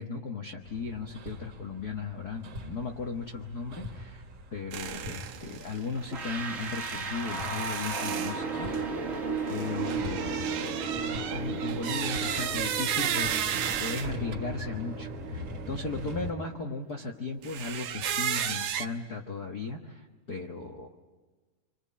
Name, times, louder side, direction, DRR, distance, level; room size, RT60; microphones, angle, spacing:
voice 1, 0.0-4.2 4.5-8.7 9.5-10.7 11.0-13.5 13.8-20.9, left 4 dB, 90° left, 2 dB, 0.8 m, -36 dB
Hammer, 0.6-16.3, left 1 dB, 50° right, 2.8 m, -43 dB
sound 1, 4.7-14.1 17.4-18.9, right 9 dB, 70° right, 1.6 m, -34 dB
sound 2, 6.1-17.0, right 4 dB, 85° right, 0.7 m, -36 dB
27.0 x 26.0 x 8.5 m, 1.3 s
omnidirectional pair, 4.1 m